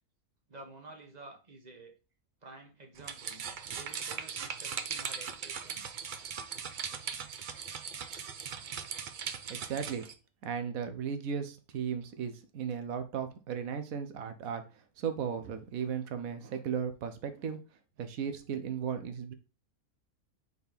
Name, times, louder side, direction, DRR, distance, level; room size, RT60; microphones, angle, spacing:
voice 1, 0.5-1.9 2.4-3.4 3.7-5.8 8.6-8.8, right 2 dB, 30° right, 3 dB, 1.3 m, -51 dB
sound 1, 3.0-10.1, right 7 dB, 55° right, 0.5 m, -39 dB
voice 2, 9.5-10.1 10.4-17.6 18.0-19.3, right 7 dB, 80° right, 9 dB, 1.3 m, -36 dB
4.8 x 4.0 x 5.1 m, 0.31 s
omnidirectional pair, 1.5 m